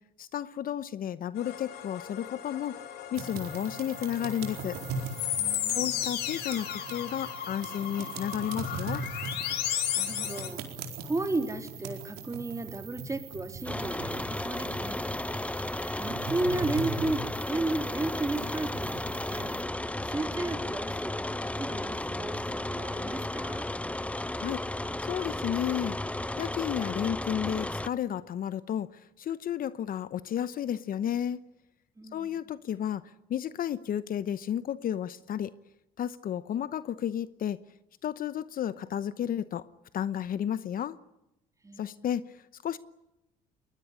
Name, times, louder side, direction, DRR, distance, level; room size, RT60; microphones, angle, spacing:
voice 1, 0.2-2.8 3.1-4.8 5.7-9.0 24.4-24.6 25.0-26.0 26.4-31.4 32.1-35.5 36.0-37.6 38.0-39.7 39.9-41.0 41.8-42.8, left 10 dB, 55° left, 0.9 m, -32 dB
sound 1, 1.4-10.5, left 11 dB, 75° left, 3.4 m, -35 dB
sound 2, 3.1-19.6, right 4 dB, 70° right, 4.3 m, -40 dB
voice 2, 5.4-6.0 10.0-10.6 11.0-15.0 16.0-19.6 20.0-23.7 32.0-32.3 41.6-42.1, right 2 dB, 20° right, 3.7 m, -34 dB
sound 3, 13.6-27.9, left 1 dB, 5° left, 0.9 m, -34 dB
22.5 x 20.5 x 10.0 m
supercardioid pair, 75°, 17 cm